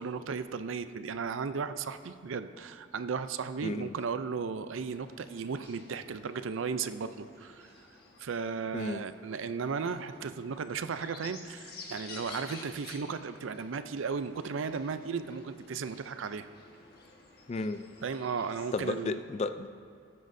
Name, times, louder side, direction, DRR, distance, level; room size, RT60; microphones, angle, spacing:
voice 1, 0.0-7.7 8.2-16.5 18.0-19.2, right 5 dB, 80° right, 11 dB, 0.5 m, -35 dB
voice 2, 3.6-3.9 8.7-9.0 17.5-17.8 18.7-19.7, left 3 dB, 35° left, 11 dB, 0.3 m, -33 dB
sound 1, 4.9-18.9, left 3 dB, 50° left, 1.4 m, -52 dB
18.0 x 9.5 x 2.6 m, 2.2 s
head